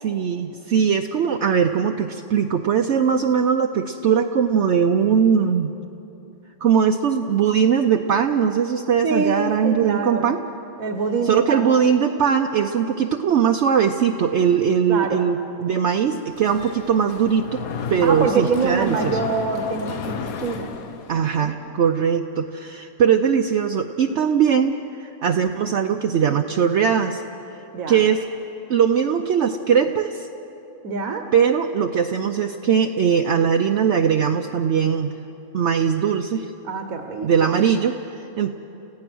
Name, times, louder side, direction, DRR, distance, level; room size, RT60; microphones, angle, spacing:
voice 1, 0.0-5.8 6.6-10.4 11.2-17.6 17.9-19.1 21.1-27.2 27.9-28.2 28.7-30.3 31.3-35.1 35.5-36.5 37.2-38.5, right 7 dB, 60° right, 5 dB, 0.9 m, -20 dB
voice 2, 9.0-10.3 10.8-11.7 14.9-15.2 18.0-20.7 21.1-21.6 27.7-28.0 30.8-31.2 36.6-37.6, right 4 dB, 80° right, 5 dB, 1.5 m, -25 dB
Mechanisms, 16.3-21.5, left 5 dB, 85° left, 1.4 m, -33 dB
29.5 x 15.5 x 6.2 m, 3.0 s
omnidirectional pair, 1.4 m